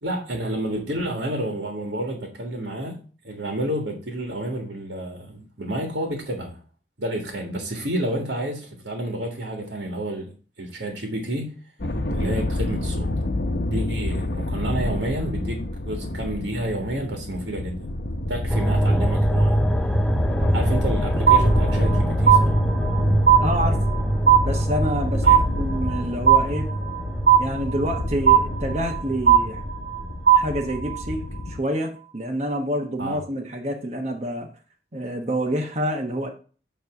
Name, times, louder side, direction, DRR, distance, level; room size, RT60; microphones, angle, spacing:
voice 1, 0.0-6.6 7.0-11.6 12.1-13.1 13.7-17.9 18.3-19.6 20.5-22.6 25.2-25.4 33.0-33.2, right 1 dB, 85° right, 1.7 m, -30 dB
sound 1, 11.8-31.6, left 1 dB, 60° left, 1.1 m, -29 dB
sound 2, 18.5-30.1 30.5-30.6, equal, 5° left, 0.4 m, -24 dB
sound 3, 21.3-22.0 22.3-23.0 23.3-24.0 24.3-25.0 25.3-26.0 26.3-27.0 27.3-28.0 28.3-29.0 29.3-30.0 30.3-31.0, right 9 dB, 70° right, 1.4 m, -17 dB
voice 2, 23.4-23.8 24.4-26.7 27.4-29.6 30.3-34.5 34.9-36.3, equal, 40° right, 1.1 m, -27 dB
9.4 x 3.2 x 5.9 m
head